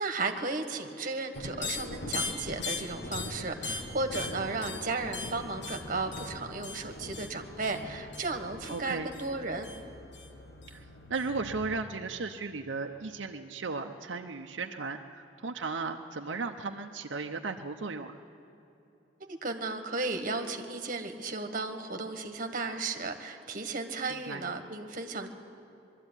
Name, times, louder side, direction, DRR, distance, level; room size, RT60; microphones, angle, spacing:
voice 1, 0.0-9.7 19.2-25.3, right 3 dB, 45° right, 6 dB, 1.5 m, -34 dB
sound 1, 1.3-11.6, left 3 dB, 65° left, 1.7 m, -40 dB
voice 2, 8.7-9.1 10.7-18.2 24.1-24.4, right 4 dB, 80° right, 4 dB, 0.8 m, -36 dB
21.5 x 13.0 x 9.8 m, 2.9 s
head